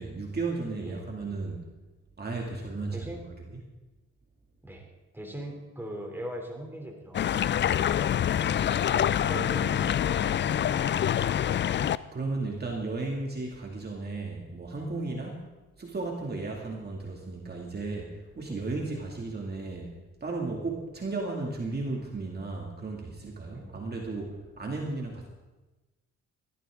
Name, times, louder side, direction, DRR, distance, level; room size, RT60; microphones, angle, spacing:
voice 1, 0.0-1.6 2.2-3.1 3.5-3.6 11.9-15.5 15.8-19.9 20.2-25.3, right 3 dB, 35° right, -1 dB, 2.4 m, -34 dB
voice 2, 2.9-3.3 4.6-4.9 5.1-7.4 9.1-11.1 18.5-18.6 23.5-23.9, right 1 dB, 5° right, 1 dB, 3.2 m, -41 dB
sound 1, 7.1-12.0, left 10 dB, 40° left, 0.4 m, -26 dB
19.0 x 13.5 x 3.7 m, 1.1 s
cardioid pair, 90°, 30 cm